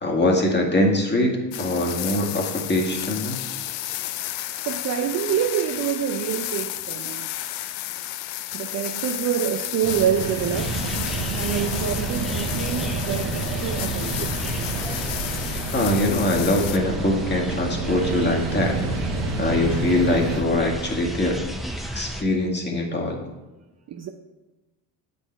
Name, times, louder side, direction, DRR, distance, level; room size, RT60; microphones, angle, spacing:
voice 1, 0.0-3.4 15.7-18.7 19.4-21.4 21.9-23.2, left 1 dB, 20° left, 0 dB, 1.6 m, -23 dB
sound 1, 1.5-16.8, left 14 dB, 80° left, 0.6 m, -32 dB
voice 2, 4.6-7.3 8.5-10.8 11.3-14.4 23.9-24.1, right 9 dB, 35° right, 6 dB, 0.5 m, -26 dB
sound 2, 9.8-20.4, right 3 dB, 55° right, 1.3 m, -29 dB
sound 3, 10.5-22.2, equal, ahead, 0.7 m, -33 dB
7.8 x 4.3 x 4.4 m, 1.1 s
hypercardioid pair, 70°, 48 cm